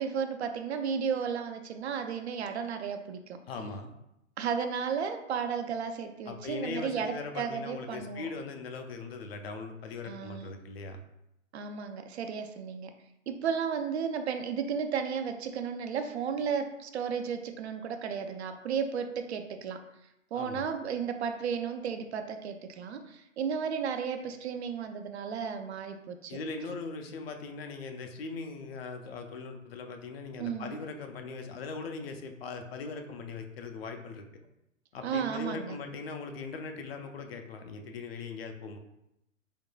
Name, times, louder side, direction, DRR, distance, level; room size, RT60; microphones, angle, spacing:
voice 1, 0.0-3.4 4.4-8.3 10.0-10.5 11.5-12.9 13.3-19.8 20.3-26.4 30.4-30.8 35.0-35.8, right 6 dB, 55° right, 6 dB, 0.5 m, -33 dB
voice 2, 3.5-3.9 6.3-11.0 20.3-20.7 26.3-34.2 34.9-38.8, left 4 dB, 50° left, 5 dB, 0.6 m, -40 dB
4.4 x 3.6 x 2.3 m, 0.84 s
figure-of-eight pair, 115°, 40 cm